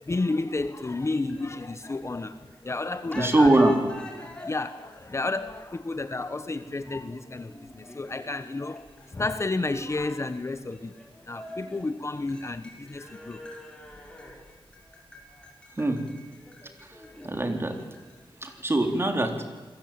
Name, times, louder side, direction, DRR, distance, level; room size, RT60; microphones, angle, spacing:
voice 1, 0.0-3.5 4.2-10.9 11.2-13.4, left 2 dB, 30° left, 11 dB, 1.1 m, -31 dB
sound 1, 0.8-2.7 3.1-19.1, left 1 dB, 10° left, 6.0 m, -47 dB
voice 2, 3.1-3.8 15.8-16.0 16.8-17.0 17.2-17.8 18.4-19.3, right 1 dB, 25° right, 5 dB, 3.8 m, -22 dB
28.5 x 21.5 x 9.0 m, 1.3 s
wide cardioid pair, 105°, 9 cm